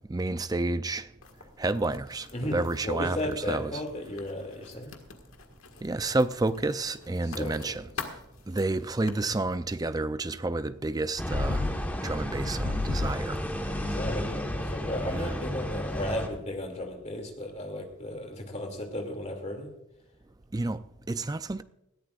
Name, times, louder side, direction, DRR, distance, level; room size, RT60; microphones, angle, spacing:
voice 1, 0.1-1.1 1.6-3.2 3.5-3.7 5.8-7.8 8.5-11.6 12.0-13.4 15.1-15.3 20.5-21.6, right 2 dB, 15° right, 0.4 m, -30 dB
Writing, 1.2-9.1, left 5 dB, 65° left, 1.7 m, -47 dB
voice 2, 2.3-4.9 7.2-8.1 13.8-19.7, left 1 dB, 30° left, 2.4 m, -35 dB
sound 1, 11.2-16.3, equal, 5° left, 1.2 m, -33 dB
sound 2, 11.3-14.8 15.1-15.2, left 2 dB, 50° left, 0.6 m, -34 dB
19.5 x 14.0 x 2.4 m
head